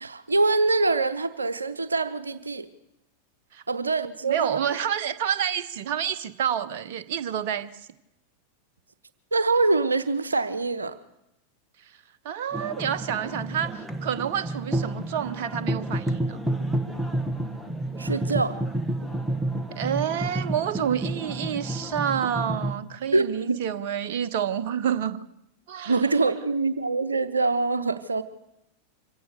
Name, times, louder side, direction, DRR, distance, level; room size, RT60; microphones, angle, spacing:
voice 1, 0.0-2.7 3.7-4.8 9.3-10.9 18.0-18.6 23.1-23.6 25.9-28.2, right 3 dB, 75° right, 11 dB, 0.9 m, -24 dB
voice 2, 4.2-7.7 12.2-16.4 19.7-25.2 25.7-26.0, right 9 dB, 50° right, 12 dB, 0.9 m, -28 dB
sound 1, 12.5-22.8, right 1 dB, ahead, 1.6 m, -30 dB
24.5 x 17.0 x 6.7 m, 0.85 s
figure-of-eight pair, 90°, 0 cm